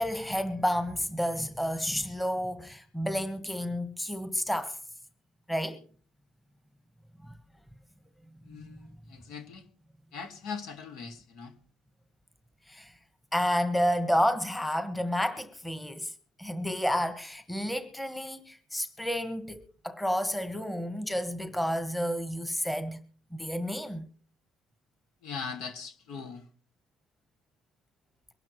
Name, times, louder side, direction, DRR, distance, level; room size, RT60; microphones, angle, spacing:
voice 1, 0.0-4.7 5.5-5.8 7.3-7.4 12.7-12.9 13.3-16.1 16.4-19.6 19.8-23.0 23.3-24.0, equal, 5° left, 1.4 m, -30 dB
voice 2, 8.4-9.7 10.1-11.5 25.2-26.4, left 5 dB, 75° left, 2.2 m, -40 dB
23.0 x 11.5 x 3.1 m
cardioid pair, 120°, 0 cm